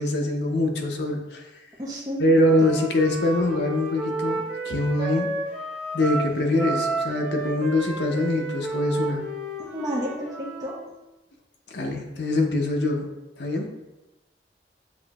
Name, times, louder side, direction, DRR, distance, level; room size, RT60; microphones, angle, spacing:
voice 1, 0.0-1.5 2.2-5.3 5.9-9.2 11.7-13.1 13.4-13.7, left 1 dB, 75° left, 2 dB, 0.7 m, -24 dB
voice 2, 1.8-2.2 9.6-10.8, equal, 20° right, -3 dB, 0.6 m, -31 dB
Wind instrument woodwind instrument, 2.4-10.8, right 3 dB, 5° right, 1.1 m, -32 dB
7.0 x 2.6 x 2.3 m, 1.0 s
head